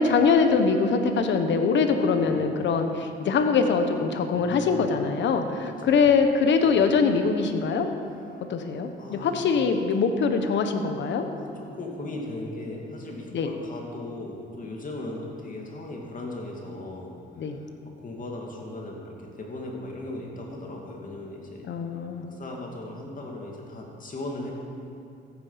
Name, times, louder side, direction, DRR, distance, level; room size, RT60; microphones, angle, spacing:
voice 1, 0.0-7.9 8.5-11.3 13.3-13.5 17.4-17.6 21.7-22.3, left 5 dB, 65° left, 6 dB, 1.1 m, -23 dB
voice 2, 2.2-2.7 4.3-5.0 5.6-6.0 6.6-6.8 8.3-8.4 9.0-9.4 11.4-17.6 18.0-21.6 22.2-24.5, left 2 dB, 40° left, -1 dB, 2.5 m, -38 dB
14.5 x 8.9 x 5.8 m, 2.7 s
cardioid pair, 90°, 20 cm